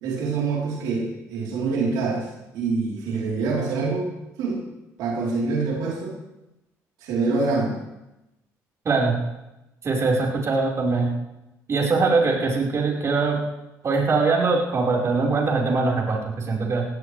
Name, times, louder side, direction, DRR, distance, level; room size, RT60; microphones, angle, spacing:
voice 1, 0.0-2.3 2.5-4.1 4.4-4.6 5.0-6.1 7.0-7.8, right 4 dB, 85° right, -3 dB, 3.9 m, -25 dB
voice 2, 8.8-9.2 9.8-11.1 11.7-13.4 13.8-16.8, right 3 dB, 45° right, -3 dB, 4.8 m, -22 dB
18.0 x 18.0 x 3.4 m, 0.98 s
cardioid pair, 85°, 7 cm